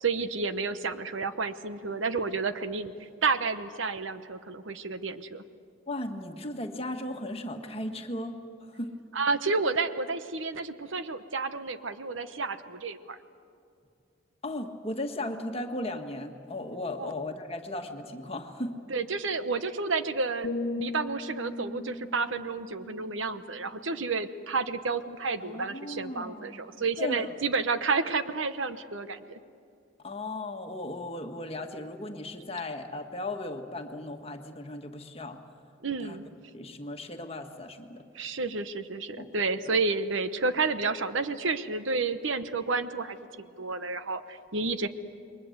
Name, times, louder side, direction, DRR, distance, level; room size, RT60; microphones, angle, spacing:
voice 1, 0.0-2.9 3.2-5.4 9.1-13.2 17.0-17.1 18.9-29.4 35.8-36.2 38.1-44.9, right 4 dB, 70° right, 11 dB, 1.0 m, -30 dB
voice 2, 5.9-8.9 14.4-18.7 25.4-27.3 30.0-35.4 36.0-36.2 36.5-38.0 39.2-39.3 39.6-39.7, left 1 dB, 30° left, 5 dB, 1.6 m, -36 dB
sound 1, 20.4-24.4 24.8-25.1, left 2 dB, 45° left, 1.1 m, -38 dB
28.5 x 22.5 x 8.0 m, 2.5 s
head